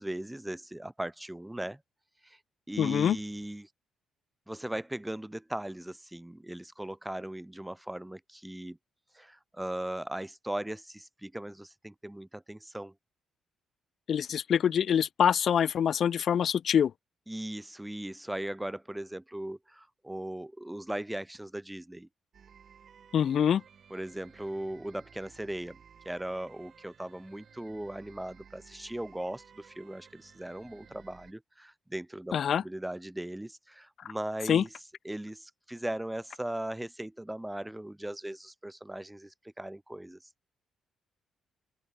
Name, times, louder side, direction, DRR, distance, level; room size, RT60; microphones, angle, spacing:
voice 1, 0.0-1.8 2.2-2.4 2.7-3.7 4.5-8.8 9.1-12.9 17.3-22.1 23.9-25.8 26.0-34.7 35.0-40.2, right 1 dB, 10° right, 1.5 m, -38 dB
voice 2, 2.8-3.2 14.1-16.9 23.1-23.6 32.3-32.6 34.5-34.6, left 8 dB, 60° left, 0.6 m, -25 dB
sound 1, 22.3-31.3, right 7 dB, 55° right, 4.8 m, -56 dB
open air
supercardioid pair, 70°, 0 cm